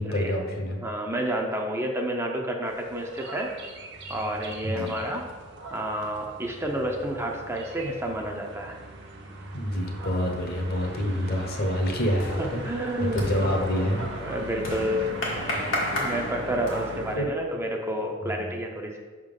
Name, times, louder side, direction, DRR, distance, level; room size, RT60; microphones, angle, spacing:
voice 1, 0.0-0.8 4.6-5.0 9.5-12.6 13.1-14.1 16.9-17.3 18.2-18.4, equal, 50° left, 3 dB, 0.9 m, -27 dB
voice 2, 0.8-3.5 4.1-5.3 5.7-8.8 12.4-13.7 14.2-15.1 15.8-19.0, equal, 15° right, 1 dB, 0.5 m, -30 dB
sound 1, 2.6-17.2, right 2 dB, 60° right, 0.9 m, -39 dB
sound 2, 10.6-10.9 11.3-17.1, left 1 dB, 90° left, 1.6 m, -33 dB
5.6 x 3.7 x 5.2 m, 1.4 s
head